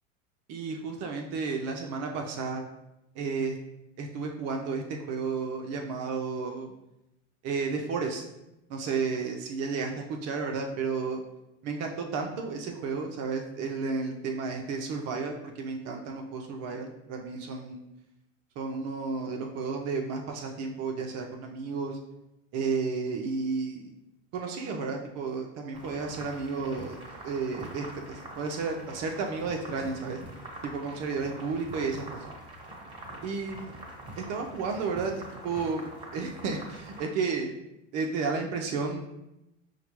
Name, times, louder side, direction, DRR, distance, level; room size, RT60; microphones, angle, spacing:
voice 1, 0.5-2.6 3.2-3.6 4.0-6.7 7.4-8.2 8.7-9.9 10.2-11.2 11.6-17.8 18.6-22.0 22.5-23.9 24.3-27.0 27.2-30.2 30.6-32.2 33.2-33.8 34.1-37.5 37.9-39.0, right 4 dB, 40° right, 2 dB, 0.6 m, -32 dB
sound 1, 25.7-37.0, right 1 dB, 15° right, 1.2 m, -44 dB
5.4 x 2.2 x 3.0 m, 0.90 s
hypercardioid pair, 105°, 38 cm